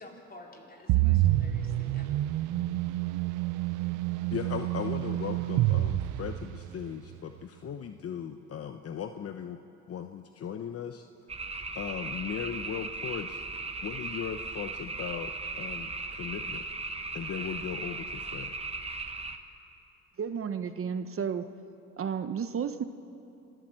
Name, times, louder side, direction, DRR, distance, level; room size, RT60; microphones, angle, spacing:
voice 1, 0.0-2.2, left 1 dB, 30° left, 0 dB, 4.2 m, -50 dB
sound 1, 0.9-6.9, right 15 dB, 90° right, 0.7 m, -28 dB
voice 2, 4.3-9.6 9.9-11.0 11.7-13.4 13.8-15.3 15.6-16.6 17.1-18.5, left 8 dB, 50° left, 7 dB, 0.9 m, -37 dB
sound 2, 11.3-19.4, right 3 dB, 20° right, 1.3 m, -37 dB
voice 3, 20.2-21.5 22.0-22.8, right 7 dB, 45° right, 10 dB, 0.9 m, -32 dB
26.5 x 14.0 x 7.7 m, 2.8 s
cardioid pair, 90°, 30 cm